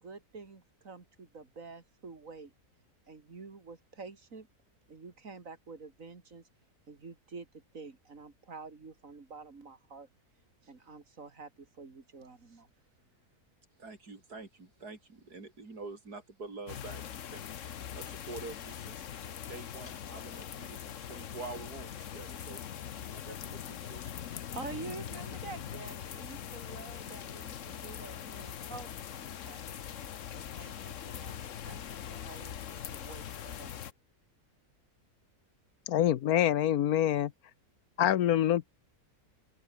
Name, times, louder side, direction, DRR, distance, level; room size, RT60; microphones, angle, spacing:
voice 1, 0.0-2.5 3.1-4.5 4.9-6.5 6.9-10.1 10.6-12.7 24.5-33.7, right 4 dB, 55° right, 3.2 m, -48 dB
voice 2, 13.8-17.5 17.9-19.1 19.5-22.6 23.1-24.0, right 3 dB, 85° right, 4.5 m, -46 dB
sound 1, 16.7-33.9, left 9 dB, 55° left, 1.2 m, -42 dB
voice 3, 35.9-37.3 38.0-38.7, left 11 dB, 75° left, 1.2 m, -26 dB
open air
omnidirectional pair, 1.6 m